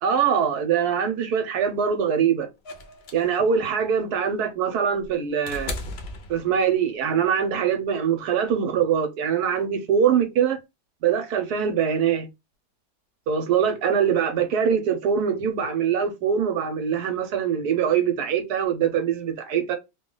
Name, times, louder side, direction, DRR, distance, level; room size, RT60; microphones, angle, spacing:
voice 1, 0.0-2.5 3.1-5.8 6.3-10.6 11.0-12.3 13.3-19.8, right 7 dB, 70° right, 1.2 m, -23 dB
sound 1, 2.6-6.9 8.2-8.3, left 2 dB, 55° left, 0.7 m, -37 dB
3.1 x 2.3 x 3.7 m
omnidirectional pair, 1.8 m